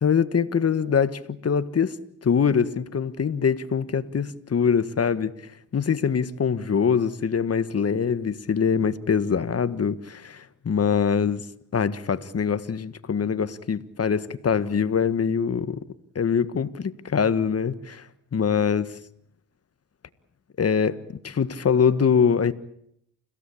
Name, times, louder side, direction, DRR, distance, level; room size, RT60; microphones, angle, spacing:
voice 1, 0.0-2.0 2.2-5.3 5.7-11.5 11.7-15.8 16.1-18.0 18.3-18.9 20.6-21.0 21.2-22.5, left 6 dB, 40° left, 1.6 m, -23 dB
29.5 x 17.0 x 8.6 m
supercardioid pair, 60°, 37 cm